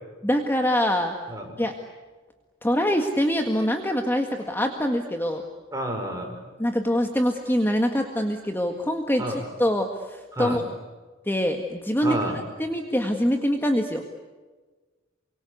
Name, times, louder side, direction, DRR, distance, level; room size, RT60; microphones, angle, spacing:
voice 1, 0.2-1.2 1.6-1.8 2.6-5.4 6.6-10.6 11.3-12.2 12.6-14.0, equal, 10° left, 4 dB, 1.8 m, -24 dB
voice 2, 5.7-6.4 9.2-9.4 10.3-10.6 12.0-12.4, right 1 dB, 15° right, 2 dB, 5.7 m, -29 dB
28.5 x 25.5 x 8.2 m, 1.3 s
head